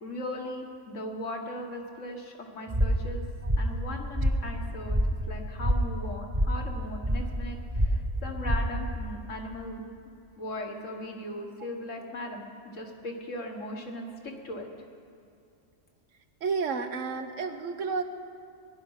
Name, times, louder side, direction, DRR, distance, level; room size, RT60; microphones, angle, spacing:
voice 1, 0.0-3.2 3.6-5.0 5.3-9.8 10.4-14.7, left 1 dB, 85° left, 2 dB, 2.0 m, -38 dB
sound 1, 2.7-9.1, equal, 20° right, 1.1 m, -28 dB
voice 2, 16.4-18.0, right 5 dB, 90° right, 8 dB, 1.3 m, -31 dB
19.0 x 11.0 x 5.7 m, 2.5 s
omnidirectional pair, 1.3 m